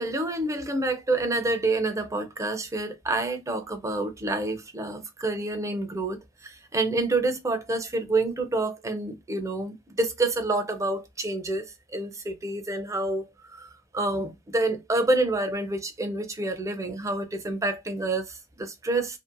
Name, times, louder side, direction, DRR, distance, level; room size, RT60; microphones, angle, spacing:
voice 1, 0.0-13.2 13.6-19.2, right 2 dB, 15° right, 0.4 m, -28 dB
2.6 x 2.0 x 2.5 m
head